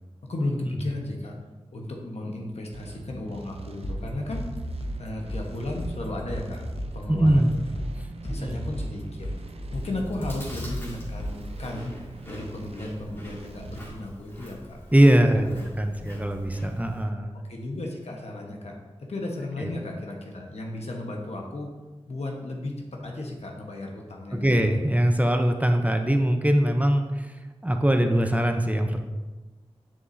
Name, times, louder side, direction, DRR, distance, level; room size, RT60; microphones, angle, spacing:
voice 1, 0.3-1.4 1.7-4.6 5.0-6.7 6.9-7.6 8.2-9.3 9.7-14.8 15.3-15.7 16.0-16.1 17.5-18.8 19.1-21.7 22.1-24.7, left 2 dB, 75° left, 0 dB, 1.2 m, -34 dB
sound 1, 2.7-13.9, right 4 dB, 65° right, 0.6 m, -43 dB
sound 2, 3.8-11.7, equal, 55° left, 0.9 m, -35 dB
voice 2, 7.1-7.5 8.3-8.6 14.9-17.3 19.6-19.7 24.3-27.3 27.6-29.0, right 1 dB, 15° right, 5 dB, 0.6 m, -22 dB
Chewing mastication, 9.7-17.0, equal, 20° left, 2.1 m, -45 dB
7.0 x 6.7 x 2.7 m, 1.2 s
cardioid pair, 50°, 11 cm